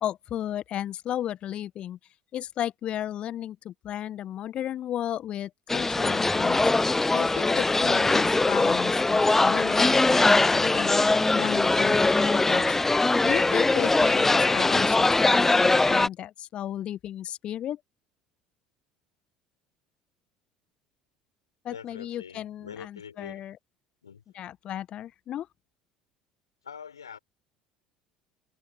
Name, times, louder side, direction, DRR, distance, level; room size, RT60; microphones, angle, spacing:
voice 1, 0.0-2.0 2.3-6.6 7.1-12.8 13.2-17.8 21.6-23.6 24.3-25.5, left 11 dB, 45° left, 1.3 m, -34 dB
sound 1, 5.7-16.1, left 3 dB, 15° left, 0.7 m, -22 dB
voice 2, 21.7-23.4 24.0-24.2 26.6-27.2, left 7 dB, 80° left, 4.7 m, -44 dB
figure-of-eight pair, 60°, 3 cm